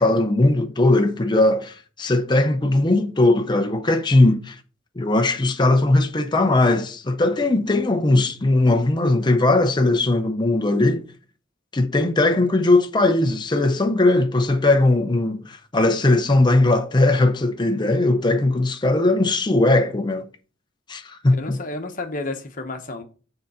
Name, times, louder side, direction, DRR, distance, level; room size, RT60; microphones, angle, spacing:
voice 1, 0.0-4.6 5.0-11.1 11.7-20.3 20.9-21.6, left 2 dB, 25° left, 0.6 m, -19 dB
voice 2, 21.3-23.0, left 2 dB, 45° left, 1.1 m, -31 dB
6.6 x 3.9 x 5.5 m
head